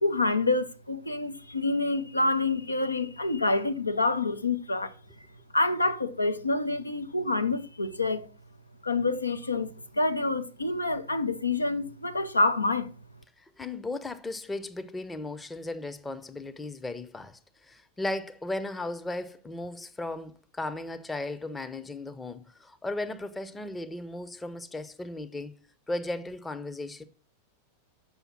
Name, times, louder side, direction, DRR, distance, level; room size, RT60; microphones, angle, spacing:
voice 1, 0.0-4.9 5.5-8.3 8.8-12.9, left 2 dB, 80° left, 0.6 m, -27 dB
voice 2, 13.4-25.6 25.9-27.0, left 2 dB, 10° left, 0.6 m, -36 dB
7.0 x 5.6 x 5.8 m
figure-of-eight pair, 90°, 0 cm